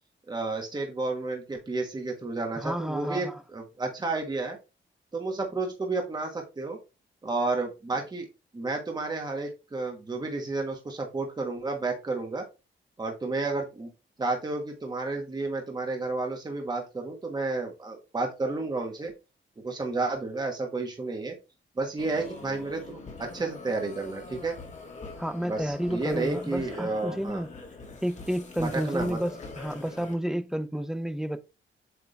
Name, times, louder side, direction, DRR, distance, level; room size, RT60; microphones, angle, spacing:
voice 1, 0.3-4.6 5.1-6.8 7.2-8.2 8.5-12.4 13.0-13.9 14.2-19.1 19.6-21.3 21.8-24.5 25.5-27.4 28.6-29.2, right 3 dB, 20° right, 1.3 m, -31 dB
voice 2, 2.6-3.4 25.2-27.5 28.0-31.4, equal, 5° right, 0.5 m, -31 dB
sound 1, 22.0-30.1, left 3 dB, 35° left, 1.7 m, -43 dB
8.0 x 3.6 x 3.3 m
wide cardioid pair, 155°, 20 cm